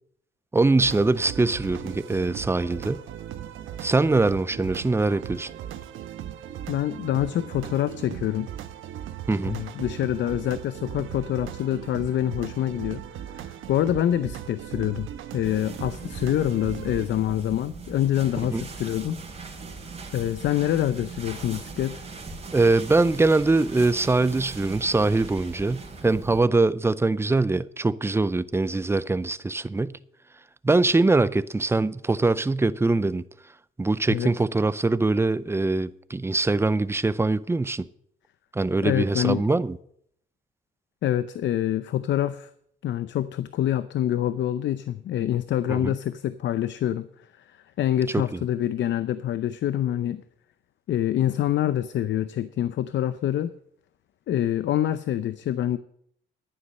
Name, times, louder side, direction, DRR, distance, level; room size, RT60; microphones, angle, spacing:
voice 1, 0.5-3.0 3.8-5.5 9.3-9.6 18.5-18.6 22.5-30.0 30.6-33.2 33.8-37.9 38.5-39.8 45.7-45.9 48.1-48.2, right 3 dB, 10° right, 0.5 m, -23 dB
sound 1, 0.8-17.1, right 10 dB, 80° right, 1.2 m, -38 dB
voice 2, 6.7-8.5 9.5-13.0 13.3-15.1 15.3-19.2 20.1-22.0 34.1-34.3 38.8-39.4 41.0-42.5 42.8-47.1 47.4-50.2 50.9-53.5 54.3-55.8, left 11 dB, 70° left, 0.6 m, -26 dB
sound 2, 15.4-26.4, right 4 dB, 35° right, 3.6 m, -40 dB
11.5 x 9.7 x 6.4 m
cardioid pair, 90°, 20 cm